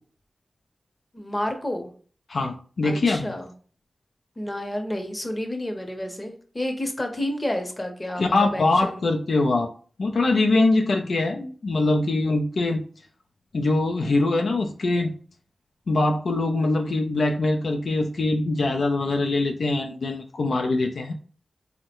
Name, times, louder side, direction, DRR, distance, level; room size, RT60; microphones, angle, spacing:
voice 1, 1.1-1.9 2.8-3.5 4.4-9.0, left 1 dB, 25° left, 4 dB, 0.7 m, -30 dB
voice 2, 2.3-3.3 8.2-9.7 10.0-12.8 13.5-15.1 15.9-21.1, left 2 dB, 80° left, 2 dB, 0.4 m, -23 dB
3.5 x 2.1 x 2.9 m, 0.43 s
cardioid pair, 60°, 0 cm